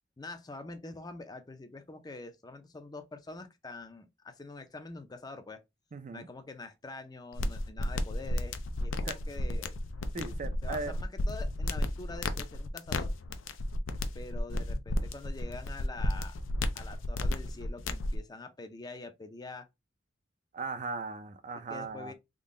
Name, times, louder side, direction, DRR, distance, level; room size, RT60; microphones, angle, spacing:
voice 1, 0.2-5.6 6.1-9.7 10.6-13.1 14.1-16.3 16.7-19.7 21.7-22.1, left 2 dB, 20° left, 0.5 m, -45 dB
voice 2, 5.9-6.3 9.0-9.2 10.1-10.9 20.5-22.1, right 4 dB, 40° right, 0.5 m, -38 dB
sound 1, 7.3-18.2, left 1 dB, 85° left, 0.5 m, -33 dB
3.7 x 2.2 x 3.7 m
head